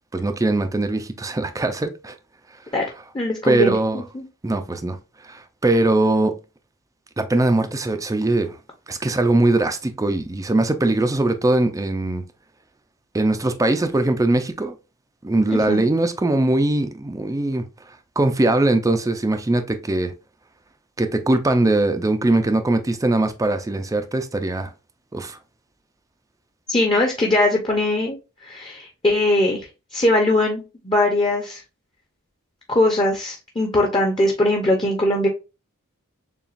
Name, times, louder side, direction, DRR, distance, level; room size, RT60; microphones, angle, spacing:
voice 1, 0.1-2.1 3.5-4.0 4.4-5.0 5.2-6.4 7.2-8.6 8.9-12.2 13.1-14.7 15.2-17.6 18.2-20.1 21.0-24.7 25.1-25.4, right 2 dB, 15° right, 0.4 m, -21 dB
voice 2, 3.1-4.2 15.5-15.8 26.7-31.6 32.7-35.3, left 1 dB, 20° left, 0.7 m, -21 dB
6.9 x 2.3 x 2.5 m
head